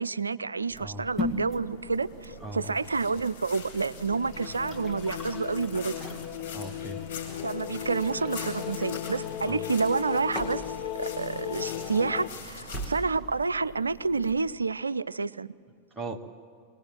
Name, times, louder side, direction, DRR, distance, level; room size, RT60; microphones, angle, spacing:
voice 1, 0.0-6.2 7.4-15.5, right 4 dB, 75° right, 0.4 m, -29 dB
sound 1, 0.7-14.5, left 1 dB, 15° left, 2.2 m, -41 dB
sound 2, 1.4-13.0, left 5 dB, 65° left, 6.3 m, -45 dB
voice 2, 2.4-2.8 6.5-7.0 9.5-9.6 15.9-16.2, right 2 dB, 10° right, 1.6 m, -38 dB
sound 3, 3.9-12.3, left 12 dB, 45° left, 0.7 m, -37 dB
24.0 x 18.5 x 7.7 m
figure-of-eight pair, 90°, 0 cm